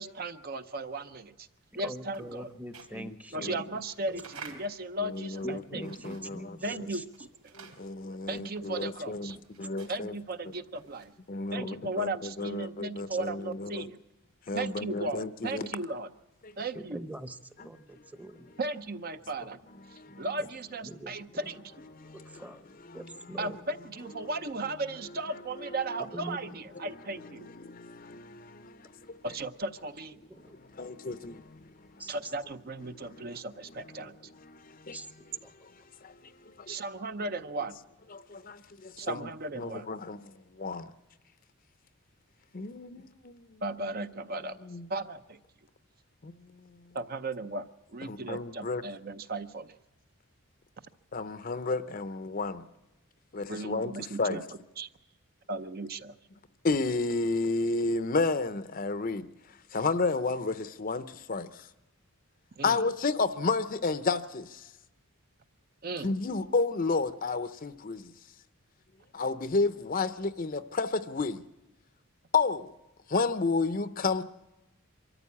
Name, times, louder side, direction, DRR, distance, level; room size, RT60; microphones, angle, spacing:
voice 1, 0.0-1.3 1.8-2.5 3.3-5.8 6.6-7.1 7.4-7.5 8.3-9.4 9.9-11.1 11.5-14.0 14.5-16.1 16.6-17.0 18.6-19.6 20.2-21.6 23.4-27.5 29.2-30.2 32.1-34.2 36.7-37.8 39.0-39.9 43.6-45.4 46.9-49.7 53.5-54.4 54.8-54.9 55.5-56.1 62.6-62.8 65.8-66.1, right 2 dB, 45° right, 0.6 m, -36 dB
sound 1, 1.5-6.5 6.8-11.3, right 5 dB, 80° right, 3.8 m, -51 dB
voice 2, 1.7-4.1 4.5-4.7 5.4-7.0 9.2-9.4 11.5-11.7 13.1-13.2 16.7-18.5 19.4-19.5 20.0-20.5 20.8-21.5 22.1-22.7 22.9-23.6 26.1-26.6 30.3-30.5 32.0-32.2 34.9-35.5, right 1 dB, 5° right, 0.8 m, -44 dB
voice 3, 5.0-6.9 7.5-10.2 11.3-13.9 14.5-15.7 16.4-16.5 19.9-20.3 21.9-22.4 24.2-24.3 25.6-25.7 27.4-29.2 30.7-31.7 32.9-33.3 33.9-34.1 34.4-35.0 36.0-36.8 38.1-39.3 39.6-40.9 42.5-43.6 44.6-44.9 46.2-46.9 48.0-48.8 51.1-52.6 53.3-54.4 56.6-59.3 59.7-61.7 62.6-64.7 66.0-68.1 69.1-71.4 72.3-72.7 73.1-74.3, left 3 dB, 40° left, 0.6 m, -32 dB
24.0 x 14.0 x 8.5 m
head